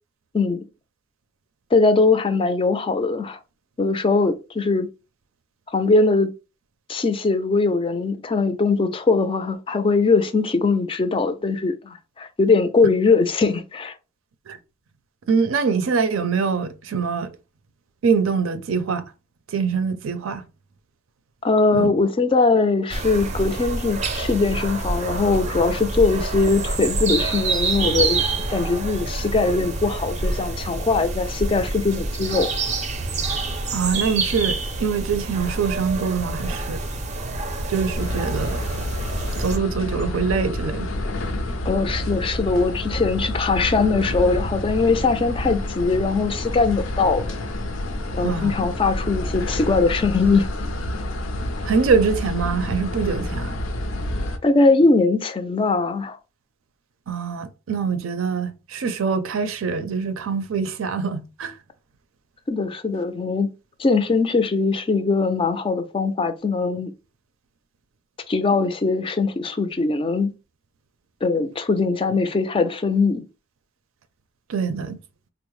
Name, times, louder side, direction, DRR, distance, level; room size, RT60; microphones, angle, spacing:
voice 1, 0.3-0.7 1.7-3.4 3.8-4.9 5.7-6.3 6.9-13.9 21.4-28.2 28.5-32.5 41.6-47.3 48.1-50.5 54.4-56.2 62.5-63.5 63.8-66.9 68.3-70.3 71.2-73.2, left 3 dB, 25° left, 0.4 m, -21 dB
voice 2, 15.3-17.3 18.0-19.1 19.5-20.4 21.7-21.9 33.7-36.8 37.7-38.6 39.4-40.9 48.2-48.5 51.6-53.6 57.1-61.5 74.5-75.0, right 5 dB, 90° right, 0.5 m, -24 dB
sound 1, 22.9-39.6, right 3 dB, 35° right, 0.5 m, -27 dB
sound 2, 38.0-54.4, left 1 dB, 80° left, 0.5 m, -28 dB
3.6 x 2.0 x 3.0 m
head